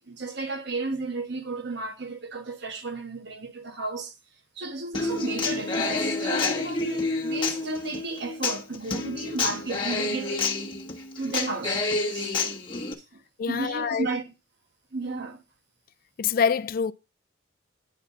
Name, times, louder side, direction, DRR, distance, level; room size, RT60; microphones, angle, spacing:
voice 1, 0.1-4.1 4.6-10.4 11.2-12.4 13.0-13.2 13.5-14.3 14.9-15.4, right 3 dB, 55° right, 1.3 m, -33 dB
Human voice / Acoustic guitar, 4.9-12.9, left 3 dB, 25° left, 1.1 m, -29 dB
voice 2, 13.4-14.1 16.2-16.9, left 6 dB, 45° left, 0.3 m, -25 dB
8.9 x 4.2 x 5.7 m
head